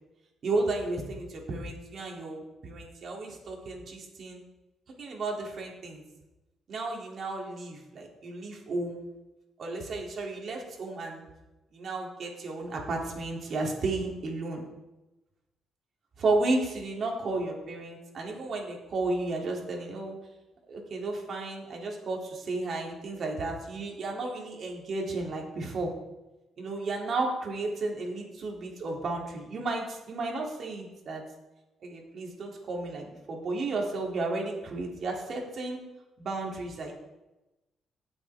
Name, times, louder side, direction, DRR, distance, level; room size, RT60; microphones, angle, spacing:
voice 1, 0.4-4.4 5.0-6.0 6.7-9.0 9.6-11.2 11.7-14.7 16.2-20.2 20.7-25.9 26.6-31.2 31.8-35.8 36.2-36.9, right 2 dB, 55° right, 0 dB, 3.2 m, -33 dB
18.0 x 7.9 x 3.7 m, 0.99 s
cardioid pair, 90°, 0 cm